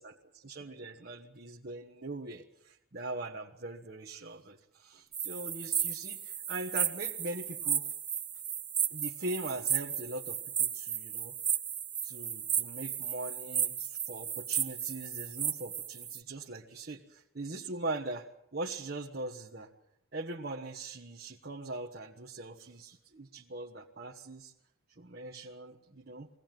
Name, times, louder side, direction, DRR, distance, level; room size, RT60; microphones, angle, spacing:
voice 1, 0.0-7.9 8.9-11.4 12.0-18.3 18.5-19.7 20.1-24.5 25.0-26.3, right 2 dB, 45° right, 0 dB, 1.2 m, -41 dB
sound 1, 5.1-16.2, right 8 dB, 20° right, 0.8 m, -34 dB
22.5 x 17.5 x 9.1 m, 0.83 s
head